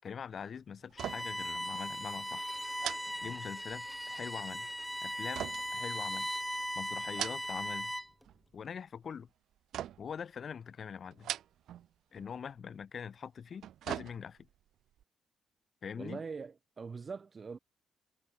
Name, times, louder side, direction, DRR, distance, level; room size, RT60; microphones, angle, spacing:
voice 1, 0.0-2.5 3.2-4.7 5.0-6.3 6.7-7.9 8.5-9.3 10.0-11.3 12.1-14.4 15.8-16.2, left 7 dB, 50° left, 6.5 m, -43 dB
sound 1, 0.9-1.5 1.7-1.9 2.8-3.9 5.3-6.5 7.0-7.8 8.1-8.6 9.7-10.2 11.1-11.9 12.2-12.3 13.4-14.6 15.0-15.1, right 11 dB, 75° right, 6.6 m, -41 dB
Bowed string instrument, 1.0-8.2, equal, ahead, 2.1 m, -38 dB
voice 2, 16.0-17.6, right 5 dB, 35° right, 5.9 m, -42 dB
cardioid pair, 90°, 0 cm